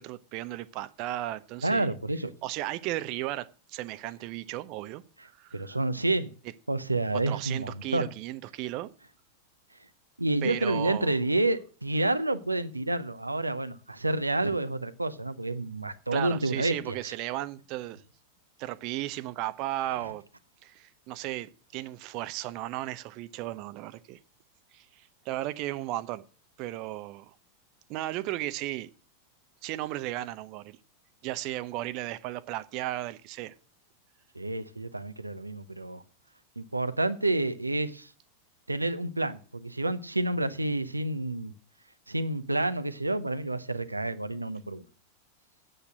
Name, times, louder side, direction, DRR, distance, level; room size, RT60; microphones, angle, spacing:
voice 1, 0.0-1.9 2.4-5.0 5.3-5.8 7.1-8.9 10.4-11.2 16.1-18.0 18.6-20.2 20.6-24.2 24.7-26.2 26.6-27.3 27.9-28.9 29.6-30.8 31.2-33.5, right 15 dB, 40° right, 0.7 m, -35 dB
voice 2, 1.6-2.3 5.5-6.3 6.7-8.1 10.2-17.1 34.3-36.0 36.6-38.1 38.7-41.5 42.1-44.8, right 2 dB, 85° right, 0.7 m, -29 dB
8.7 x 8.2 x 7.6 m
figure-of-eight pair, 90°, 0 cm